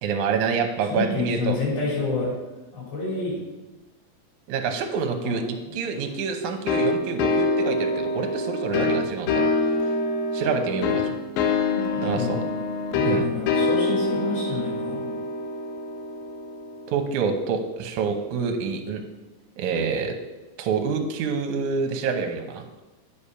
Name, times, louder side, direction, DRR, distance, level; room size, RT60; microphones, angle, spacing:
voice 1, 0.0-1.6 4.5-5.4 5.7-9.5 10.3-11.1 12.0-12.4 13.0-13.2 16.9-19.0 19.6-20.2 20.6-22.6, right 5 dB, 70° right, 4 dB, 2.1 m, -27 dB
voice 2, 0.9-2.3 2.7-3.4 5.2-5.4 5.6-5.7 11.7-12.4 12.9-15.1 19.7-19.8, left 3 dB, 45° left, -6 dB, 4.3 m, -29 dB
sound 1, 6.7-17.1, left 3 dB, 85° left, 2.4 m, -25 dB
8.5 x 5.1 x 5.6 m, 1.1 s
omnidirectional pair, 4.0 m